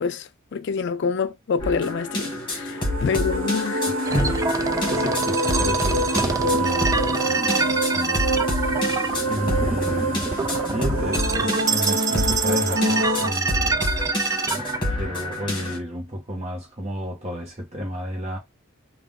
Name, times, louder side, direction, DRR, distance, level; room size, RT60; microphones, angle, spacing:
voice 1, 0.0-3.9, left 5 dB, 55° left, 0.4 m, -27 dB
sound 1, 1.6-15.8, left 1 dB, 25° left, 1.5 m, -28 dB
voice 2, 2.7-3.0 3.9-8.9 9.3-10.3 10.7-13.8 14.5-18.4, equal, 30° right, 1.2 m, -32 dB
sound 2, 2.7-13.3, right 2 dB, 75° right, 1.0 m, -26 dB
sound 3, 4.0-14.8, right 4 dB, 15° right, 0.3 m, -27 dB
3.5 x 2.4 x 3.6 m
head